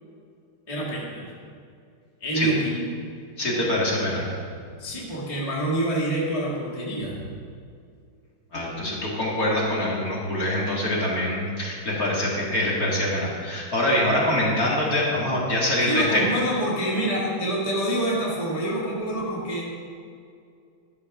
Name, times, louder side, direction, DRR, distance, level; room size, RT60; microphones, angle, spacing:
voice 1, 0.7-1.3 2.2-2.8 4.8-7.2 15.8-19.6, right 1 dB, 15° left, -5 dB, 1.8 m, -26 dB
voice 2, 3.4-4.3 8.5-16.2, left 1 dB, 45° left, -5 dB, 2.5 m, -24 dB
12.5 x 6.6 x 6.0 m, 2.3 s
omnidirectional pair, 2.3 m